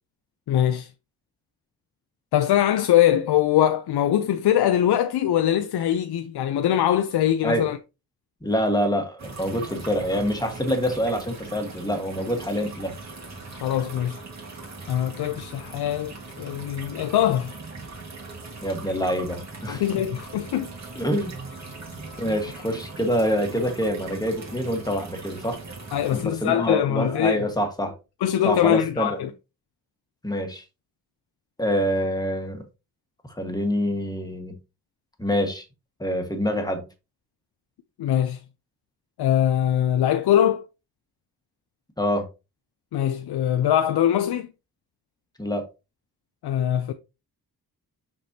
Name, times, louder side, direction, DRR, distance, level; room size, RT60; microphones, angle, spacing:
voice 1, 0.5-0.9 2.3-7.8 13.5-14.2 14.9-17.5 19.7-20.7 25.9-27.4 28.2-29.3 38.0-38.4 39.2-40.6 42.9-44.5 46.4-46.9, left 11 dB, 90° left, 0.6 m, -22 dB
voice 2, 8.4-12.9 18.6-19.8 20.9-21.3 22.2-25.6 26.1-27.9 28.4-29.2 30.2-30.6 31.6-32.6 33.4-34.6 35.2-35.6 36.0-36.8 42.0-42.3 45.4-45.6, equal, 10° left, 1.5 m, -26 dB
sound 1, 9.2-26.2, right 3 dB, 45° right, 2.1 m, -40 dB
6.1 x 6.0 x 2.8 m
wide cardioid pair, 135°, 38 cm